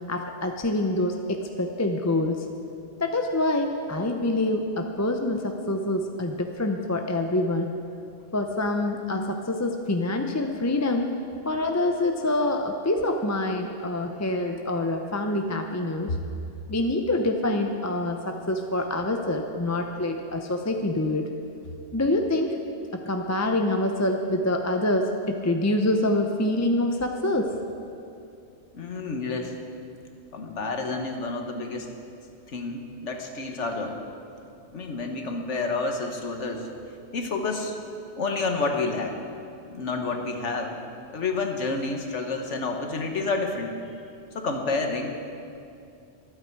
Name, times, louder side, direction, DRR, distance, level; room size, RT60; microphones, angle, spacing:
voice 1, 0.1-2.4 3.0-7.7 8.3-11.1 11.4-16.2 16.7-21.3 21.9-22.6 22.9-27.5, left 1 dB, 20° left, 4 dB, 0.5 m, -26 dB
voice 2, 28.7-29.6 30.3-31.9 32.5-34.0 34.7-36.7 37.1-37.8 38.2-39.2 39.7-40.8 41.1-43.7 44.3-45.2, left 3 dB, 75° left, 3 dB, 1.6 m, -29 dB
24.5 x 8.6 x 4.7 m, 2.6 s
omnidirectional pair, 1.2 m